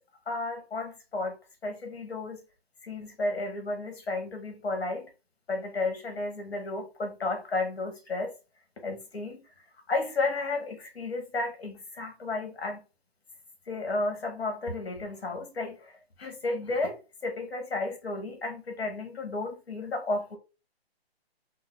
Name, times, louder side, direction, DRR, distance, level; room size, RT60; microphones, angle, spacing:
voice 1, 0.3-2.4 2.8-5.1 5.5-8.4 8.8-9.4 9.9-12.8 13.7-20.4, left 2 dB, 75° left, 1.4 m, -33 dB
3.8 x 2.0 x 3.5 m
hypercardioid pair, 175°, 32 cm